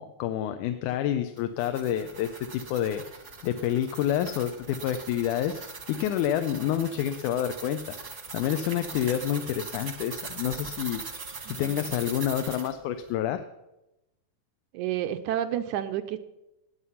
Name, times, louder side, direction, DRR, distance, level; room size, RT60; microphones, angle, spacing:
voice 1, 0.0-3.0 3.4-13.4, left 10 dB, 80° left, 9 dB, 2.1 m, -29 dB
sound 1, 1.4-12.7, right 4 dB, 35° right, 1.1 m, -41 dB
voice 2, 11.5-11.9 14.7-16.2, right 11 dB, 80° right, 10 dB, 1.9 m, -30 dB
17.5 x 9.6 x 5.6 m, 0.94 s
omnidirectional pair, 3.7 m